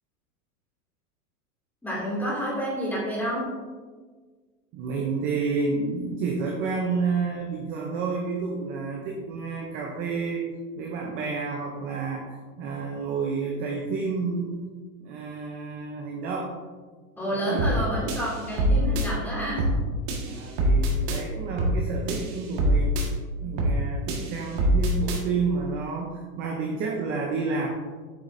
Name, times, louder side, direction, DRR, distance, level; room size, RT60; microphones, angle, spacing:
voice 1, 1.8-3.5 17.2-19.8, equal, 5° left, -6 dB, 2.2 m, -29 dB
voice 2, 4.7-10.4 10.8-14.6 15.0-16.5 17.3-17.8 20.2-22.9 23.4-27.7, right 4 dB, 20° right, 0 dB, 0.5 m, -30 dB
sound 1, 17.6-17.8 18.1-19.1 19.6-19.8 20.1-21.2 21.6-21.8 22.1-23.1 23.6-23.8 24.1-25.2, equal, 45° right, 1.6 m, -24 dB
8.4 x 6.6 x 2.6 m, 1.4 s
hypercardioid pair, 145°, 44 cm